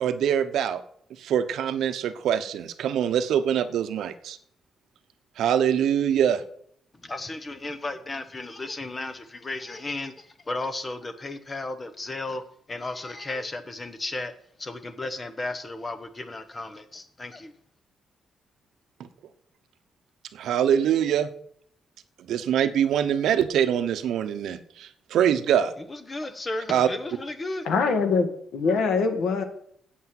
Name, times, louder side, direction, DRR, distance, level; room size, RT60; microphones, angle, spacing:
voice 1, 0.0-0.8 1.2-4.4 5.4-6.4 20.3-21.3 22.3-25.7 26.7-26.9, right 9 dB, 75° right, 10 dB, 0.9 m, -24 dB
voice 2, 7.0-12.4 12.7-14.3 14.6-17.5 25.9-27.7, left 2 dB, 20° left, 10 dB, 1.0 m, -34 dB
voice 3, 27.6-29.4, left 4 dB, 70° left, 7 dB, 1.9 m, -23 dB
8.6 x 8.2 x 7.7 m, 0.64 s
cardioid pair, 170°, 0 cm